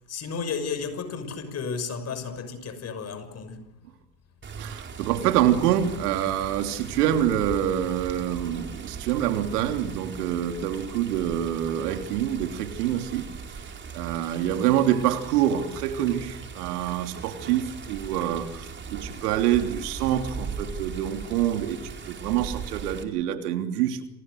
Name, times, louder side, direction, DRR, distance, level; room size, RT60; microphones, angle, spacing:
voice 1, 0.1-3.6, left 5 dB, 30° left, 6.3 m, -33 dB
Water, 4.4-23.0, right 5 dB, 20° right, 4.2 m, -39 dB
voice 2, 4.6-13.4 13.9-24.0, right 11 dB, 65° right, 3.3 m, -26 dB
29.0 x 28.0 x 6.6 m
hypercardioid pair, 105°, 49 cm